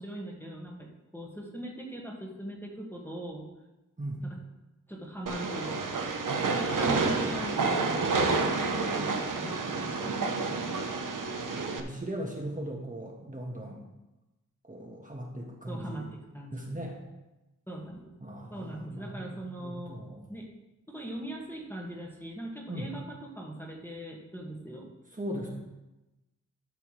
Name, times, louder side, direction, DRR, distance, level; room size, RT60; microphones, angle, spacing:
voice 1, 0.0-3.5 4.2-4.4 4.9-6.1 6.5-10.7 15.7-16.7 17.7-18.1 18.5-20.0 20.3-20.5 20.9-24.9, right 1 dB, 5° left, -2 dB, 1.9 m, -40 dB
Train, 5.3-11.8, right 4 dB, 85° right, 1.0 m, -29 dB
voice 2, 9.8-10.1 10.4-10.7 11.7-13.8 14.6-16.1 16.5-17.0 18.2-20.2 22.7-22.9 25.2-25.5, right 1 dB, 25° right, -2 dB, 1.5 m, -39 dB
12.5 x 6.9 x 3.3 m, 1.0 s
wide cardioid pair, 90°, 31 cm